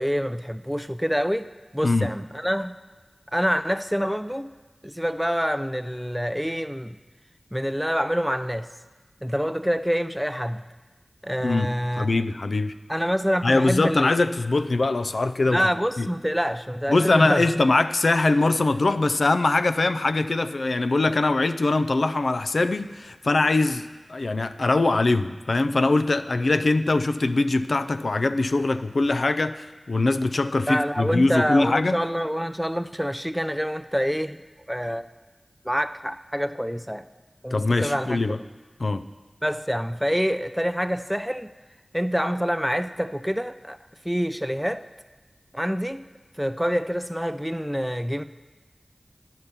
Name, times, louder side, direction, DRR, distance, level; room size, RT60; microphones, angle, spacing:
voice 1, 0.0-1.5 1.7-2.7 3.3-4.5 4.8-7.0 7.5-8.7 9.2-10.6 11.2-12.1 12.9-14.1 15.5-17.5 30.7-34.4 34.7-35.1 35.6-37.1 37.4-38.2 39.4-41.5 41.9-43.8 44.0-44.9 45.5-46.0 46.4-48.2, equal, ahead, 11 dB, 0.4 m, -26 dB
voice 2, 11.4-12.7 13.4-15.6 16.0-16.1 16.9-32.0 37.5-38.4 38.8-39.0, left 2 dB, 80° left, 10 dB, 0.4 m, -22 dB
10.5 x 5.7 x 6.7 m, 1.3 s
wide cardioid pair, 40°, 0 cm